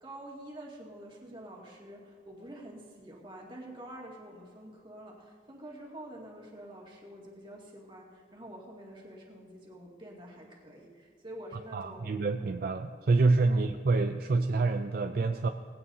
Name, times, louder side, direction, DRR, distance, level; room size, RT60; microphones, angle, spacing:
voice 1, 0.0-12.1, right 1 dB, 25° right, -2 dB, 2.3 m, -47 dB
voice 2, 11.7-15.5, right 3 dB, 55° right, 6 dB, 0.4 m, -27 dB
20.5 x 16.5 x 2.8 m, 2.1 s
head